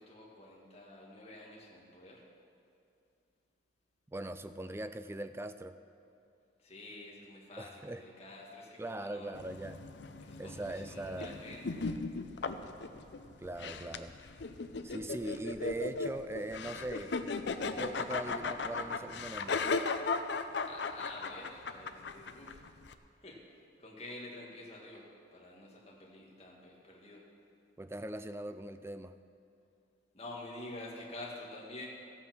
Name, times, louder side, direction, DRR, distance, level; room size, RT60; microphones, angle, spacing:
voice 1, 0.0-2.2 6.6-9.4 10.2-11.9 20.7-22.6 23.2-27.3 30.1-31.9, left 2 dB, 35° left, -3 dB, 2.0 m, -48 dB
voice 2, 4.1-5.7 7.6-8.0 8.8-9.8 10.4-11.4 13.4-14.1 14.8-17.2 17.7-19.6 27.8-29.1, right 1 dB, 15° right, 11 dB, 0.3 m, -41 dB
sound 1, 9.3-22.9, left 4 dB, 65° left, 0.6 m, -37 dB
14.5 x 8.5 x 6.1 m, 2.5 s
head